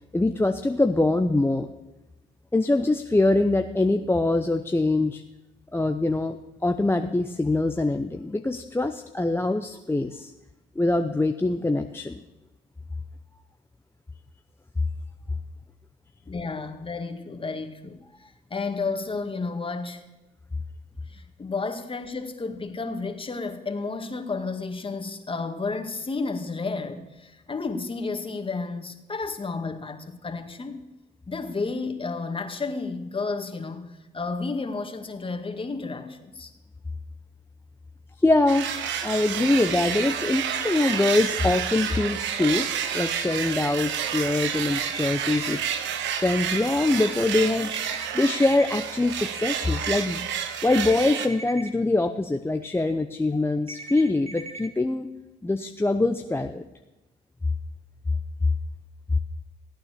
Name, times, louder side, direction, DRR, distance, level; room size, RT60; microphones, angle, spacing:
voice 1, 0.1-1.7 2.5-5.2 5.7-6.4 6.6-10.3 10.8-12.2 38.2-38.7 39.0-42.7 42.9-45.6 46.2-47.7 48.1-50.3 50.6-55.1 55.4-56.6, left 2 dB, 10° left, 5 dB, 0.8 m, -23 dB
voice 2, 16.3-18.0 18.5-20.1 21.1-30.8 31.3-36.5, left 4 dB, 30° left, 6 dB, 2.0 m, -32 dB
sound 1, 38.5-51.3, right 8 dB, 80° right, 1.2 m, -30 dB
sound 2, 44.7-45.7 47.7-48.7 50.7-51.7 53.7-54.7, right 2 dB, 35° right, 1.8 m, -40 dB
16.0 x 9.0 x 6.8 m, 1.1 s
supercardioid pair, 65°, 19 cm